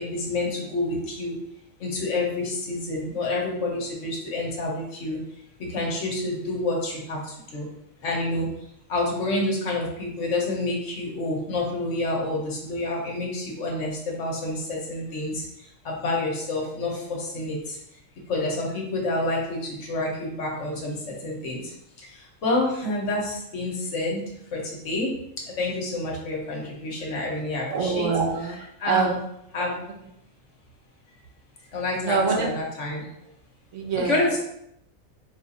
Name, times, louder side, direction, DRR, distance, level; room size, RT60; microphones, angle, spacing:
voice 1, 0.0-1.4 1.8-5.2 5.6-7.2 7.5-7.7 8.0-8.5 8.9-15.4 15.8-17.8 18.3-20.9 21.2-21.6 22.4-24.2 24.5-24.6 24.8-25.1 25.6-28.1 28.8-29.2 29.5-29.8 31.7-33.0 34.1-34.4, left 2 dB, 60° left, -1 dB, 1.3 m, -28 dB
voice 2, 27.7-29.1 32.0-32.5 33.7-34.4, right 5 dB, 70° right, 1 dB, 1.0 m, -25 dB
4.3 x 2.4 x 4.1 m, 0.77 s
omnidirectional pair, 1.4 m